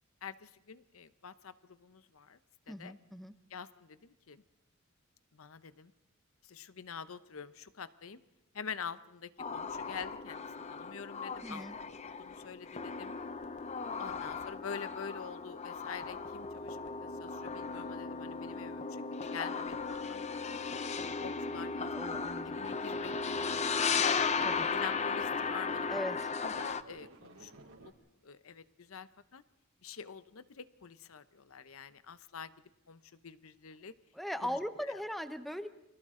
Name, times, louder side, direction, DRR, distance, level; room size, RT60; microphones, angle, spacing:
voice 1, 0.2-2.4 2.8-2.9 3.5-4.4 5.3-5.9 6.4-8.2 8.5-11.7 12.1-13.1 14.0-20.6 21.2-24.2 24.7-26.0 26.4-27.9 28.2-29.4 29.8-32.5 32.9-33.9 34.4-34.6 34.9-35.0, left 6 dB, 80° left, 13 dB, 0.8 m, -46 dB
voice 2, 2.7-3.3 11.4-11.8 21.9-22.6 24.4-24.7 25.9-26.2 34.1-35.7, equal, ahead, 9 dB, 0.8 m, -39 dB
sound 1, 9.4-26.8, left 5 dB, 30° left, 0.7 m, -36 dB
sound 2, 22.7-24.7 25.0-27.9, right 2 dB, 80° right, 3.6 m, -56 dB
30.0 x 24.5 x 3.8 m, 0.94 s
head